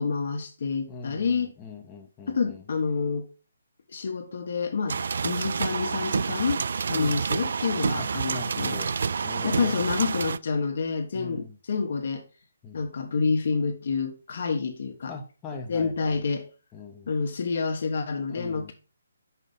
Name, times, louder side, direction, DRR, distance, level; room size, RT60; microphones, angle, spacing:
voice 1, 0.0-1.5 2.3-3.3 3.9-8.8 9.4-12.2 12.7-15.1 15.7-16.5 17.1-18.7, left 5 dB, 55° left, 1.5 m, -28 dB
voice 2, 0.9-2.6 6.9-7.2 8.0-8.9 9.2-9.8 11.1-11.5 12.6-12.9 15.1-16.2 16.7-17.1 18.3-18.7, left 4 dB, 15° left, 1.0 m, -40 dB
sound 1, 4.9-10.4, right 5 dB, 60° right, 0.3 m, -28 dB
5.9 x 5.2 x 5.4 m
figure-of-eight pair, 145°, 0 cm